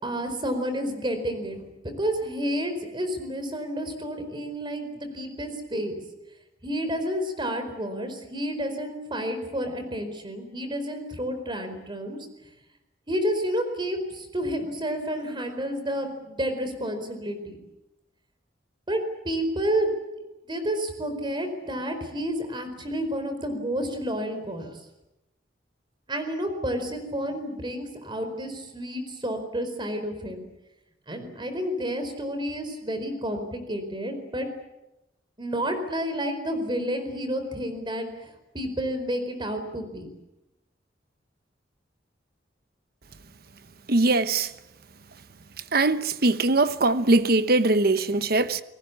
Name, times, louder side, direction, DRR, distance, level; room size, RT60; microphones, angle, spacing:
voice 1, 0.0-5.9 6.6-12.2 13.1-17.6 18.9-19.9 20.5-24.7 26.1-30.4 31.1-34.5 35.4-38.1 38.5-40.1, equal, 25° right, 4.6 m, -30 dB
voice 2, 43.9-44.5 45.7-48.6, right 2 dB, 55° right, 1.0 m, -21 dB
29.5 x 19.5 x 8.5 m
head